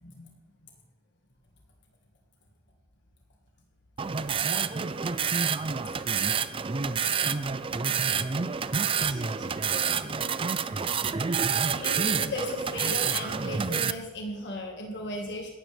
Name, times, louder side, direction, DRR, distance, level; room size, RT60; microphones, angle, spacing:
voice 1, 0.0-0.4 0.6-0.7 11.8-15.5, left 1 dB, 55° left, 0 dB, 1.7 m, -36 dB
sound 1, 4.0-13.9, right 6 dB, 25° right, 0.4 m, -28 dB
voice 2, 7.3-7.7 8.7-10.7, right 2 dB, 40° right, 5 dB, 1.4 m, -47 dB
17.0 x 12.5 x 3.4 m, 1.4 s
head